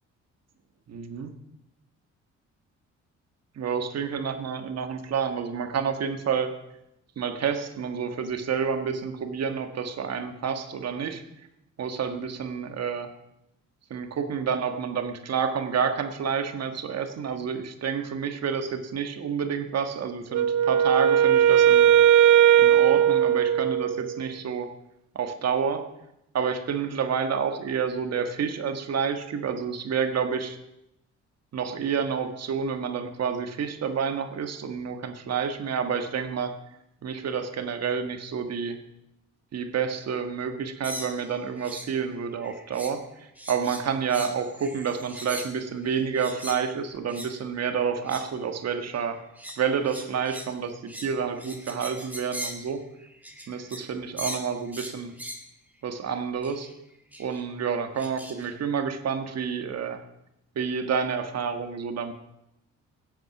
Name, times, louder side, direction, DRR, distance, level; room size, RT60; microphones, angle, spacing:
voice 1, 0.9-1.3 3.6-6.5 7.1-11.2 11.8-13.1 13.9-21.9 22.6-24.7 25.1-25.9 26.3-30.6 31.5-36.5 37.0-38.8 39.5-43.0 43.5-49.2 49.6-52.8 53.5-55.1 55.8-56.7 57.2-60.0 60.5-62.1, right 6 dB, 55° right, 7 dB, 1.7 m, -29 dB
Wind instrument woodwind instrument, 20.3-24.2, right 10 dB, 75° right, 0.6 m, -18 dB
sound 1, 40.8-41.9 42.2-43.1 43.4-46.7 47.1-47.3 47.9-48.4 48.9-53.9 54.2-55.5 56.4-56.7 57.1-57.4 58.0-58.5, equal, 5° right, 2.1 m, -40 dB
17.0 x 7.9 x 6.0 m, 0.85 s
cardioid pair, 90°, 30 cm